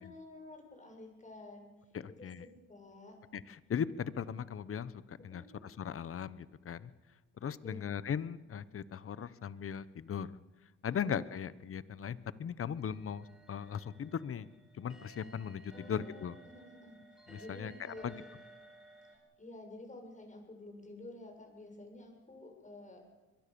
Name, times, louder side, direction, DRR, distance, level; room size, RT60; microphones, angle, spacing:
voice 1, 0.0-1.7 2.2-2.3 2.7-3.2 5.3-5.6 7.6-8.0 11.0-11.2 15.7-18.2 19.1-23.0, left 2 dB, 25° left, 3 dB, 7.4 m, -51 dB
voice 2, 1.9-2.4 3.3-6.9 7.4-10.3 10.8-14.5 14.7-16.4 17.3-17.7 18.0-18.1, left 8 dB, 45° left, 17 dB, 1.1 m, -38 dB
sound 1, 12.8-19.2, right 2 dB, ahead, 5.1 m, -57 dB
23.0 x 22.5 x 7.0 m, 1.1 s
cardioid pair, 90°, 30 cm